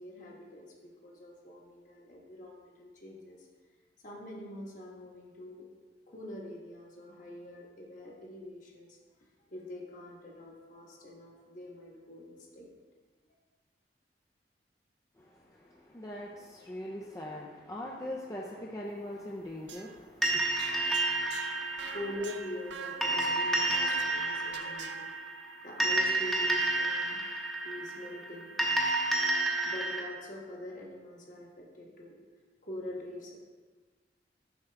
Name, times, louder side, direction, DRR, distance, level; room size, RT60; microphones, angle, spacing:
voice 1, 0.0-3.5 4.0-5.6 6.1-9.0 9.5-12.7 21.9-25.1 25.6-27.2 27.6-28.6 29.6-32.1 32.6-33.3, left 1 dB, 45° left, -2 dB, 1.3 m, -44 dB
voice 2, 15.2-20.4, left 1 dB, 20° left, -3 dB, 0.5 m, -41 dB
sound 1, 19.4-25.1, right 6 dB, 75° right, 0.5 m, -46 dB
sound 2, 20.2-30.0, right 2 dB, ahead, 0.8 m, -30 dB
7.2 x 5.8 x 3.4 m, 1.4 s
head